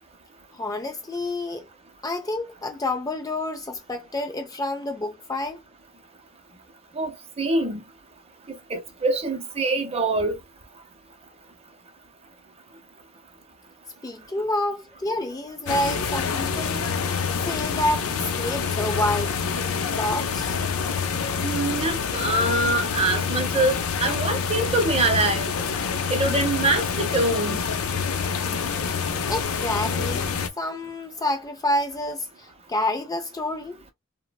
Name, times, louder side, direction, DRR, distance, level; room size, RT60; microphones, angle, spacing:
voice 1, 0.5-1.6 2.0-5.6 14.0-16.9 17.4-19.4 20.0-20.6 29.2-33.8, left 1 dB, 15° left, 0.3 m, -28 dB
voice 2, 7.0-7.8 8.5-10.4 21.4-25.5 26.1-27.6, right 2 dB, 30° right, 0.6 m, -24 dB
sound 1, 15.7-30.5, left 6 dB, 80° left, 0.5 m, -27 dB
3.1 x 2.1 x 2.2 m
head